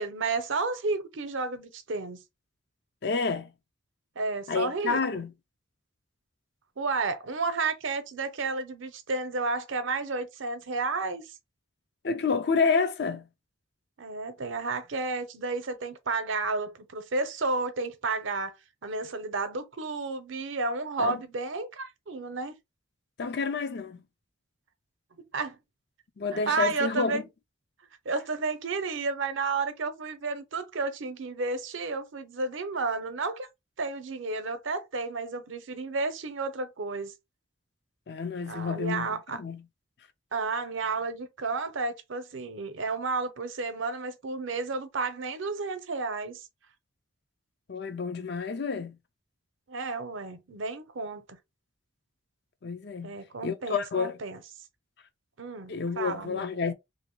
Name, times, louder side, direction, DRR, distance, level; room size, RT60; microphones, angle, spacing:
voice 1, 0.0-2.2 4.2-5.3 6.8-11.3 14.0-18.5 18.8-22.5 25.3-25.6 26.3-27.2 28.0-33.5 33.8-37.1 38.5-39.4 40.3-46.5 49.7-51.4 53.0-54.4 55.4-56.4, right 3 dB, 75° right, 0.7 m, -32 dB
voice 2, 3.0-3.5 4.5-5.3 12.0-13.2 21.0-21.2 23.2-24.0 26.2-27.2 38.1-39.1 39.4-39.6 47.7-49.0 52.6-53.1 53.4-54.2 55.7-56.7, left 5 dB, 55° left, 0.5 m, -29 dB
2.9 x 2.7 x 3.0 m
head